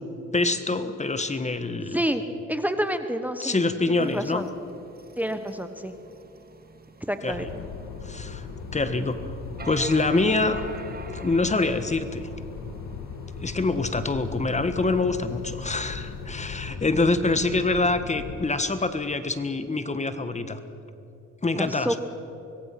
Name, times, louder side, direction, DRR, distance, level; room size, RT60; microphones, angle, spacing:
voice 1, 0.3-2.0 3.4-4.5 7.2-7.5 8.0-8.5 8.7-9.3 9.6-10.6 11.1-12.3 13.4-20.6 21.4-22.0, left 3 dB, 25° left, 10 dB, 1.5 m, -25 dB
voice 2, 1.9-3.6 3.9-4.4 5.2-5.9 7.1-7.5 21.6-22.0, equal, 5° right, 8 dB, 1.3 m, -28 dB
sound 1, 4.0-16.3, right 4 dB, 30° right, 2.0 m, -47 dB
sound 2, 7.3-18.4, left 5 dB, 75° left, 1.8 m, -38 dB
25.5 x 21.5 x 6.0 m, 2.9 s
cardioid pair, 90°, 30 cm